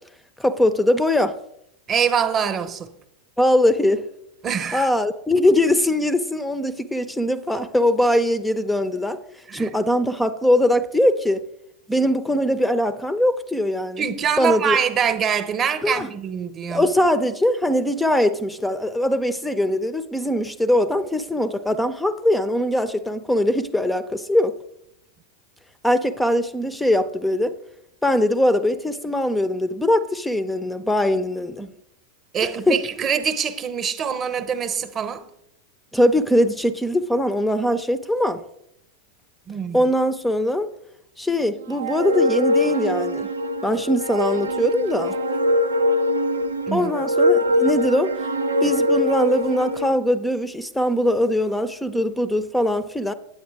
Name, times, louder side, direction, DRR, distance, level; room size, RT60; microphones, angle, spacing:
voice 1, 0.4-1.4 3.4-4.0 4.7-9.2 9.5-11.4 11.9-14.0 14.4-14.8 15.8-16.1 16.7-24.5 25.8-27.5 28.0-31.7 32.4-32.8 35.9-38.4 39.7-40.7 41.2-43.3 43.6-45.1 46.7-48.1 48.6-53.1, left 1 dB, 5° left, 0.4 m, -21 dB
voice 2, 1.9-2.9 4.4-4.9 9.5-9.7 14.0-16.8 32.3-35.2 39.5-39.8 46.7-46.9, right 7 dB, 25° right, 0.8 m, -24 dB
sound 1, 41.8-49.9, left 1 dB, 80° right, 0.6 m, -22 dB
9.0 x 8.7 x 3.4 m
figure-of-eight pair, 90°, 0 cm